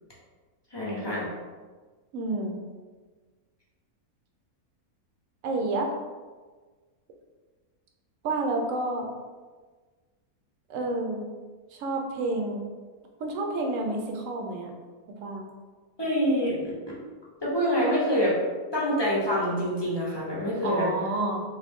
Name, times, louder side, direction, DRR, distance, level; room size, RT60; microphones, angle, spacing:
voice 1, 0.7-1.3 16.0-17.0 17.4-18.3 18.7-20.9, equal, 25° left, -6 dB, 0.5 m, -26 dB
voice 2, 2.1-2.6 5.4-5.9 8.2-9.1 10.7-11.3 11.7-12.6 13.2-14.7 15.2-15.5 20.6-21.4, right 2 dB, 70° right, 2 dB, 0.9 m, -29 dB
3.2 x 2.5 x 3.4 m, 1.4 s
omnidirectional pair, 1.6 m